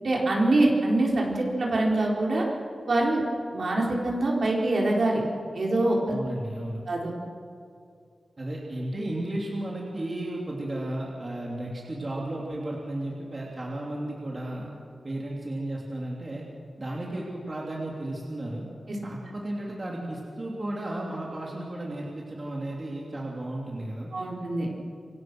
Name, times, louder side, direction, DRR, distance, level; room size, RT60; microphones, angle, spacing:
voice 1, 0.0-2.4 2.9-3.2 3.5-5.2 5.5-6.0 6.9-7.1 24.1-24.7, right 2 dB, 55° right, -2 dB, 4.5 m, -24 dB
voice 2, 6.1-6.8 8.4-14.7 15.0-16.5 16.8-18.7 19.0-24.1, right 1 dB, 30° right, -3 dB, 3.3 m, -34 dB
27.0 x 25.0 x 6.3 m, 2.4 s
wide cardioid pair, 145°, 0 cm